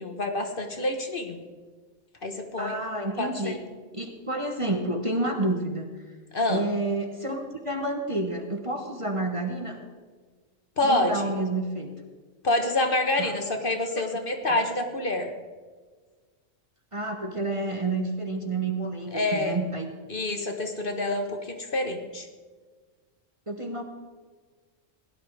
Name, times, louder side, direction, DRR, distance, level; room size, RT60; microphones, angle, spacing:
voice 1, 0.0-1.4 2.2-2.7 3.2-3.6 6.3-6.6 10.8-11.3 12.4-15.3 19.1-19.6 20.1-22.3, left 2 dB, 45° left, 5 dB, 1.3 m, -27 dB
voice 2, 2.6-3.6 3.9-5.9 6.5-9.8 10.8-11.9 13.2-13.3 13.9-14.0 16.9-19.9 23.5-23.8, right 2 dB, 25° right, 4 dB, 1.2 m, -29 dB
17.0 x 11.0 x 4.8 m, 1.5 s
omnidirectional pair, 1.3 m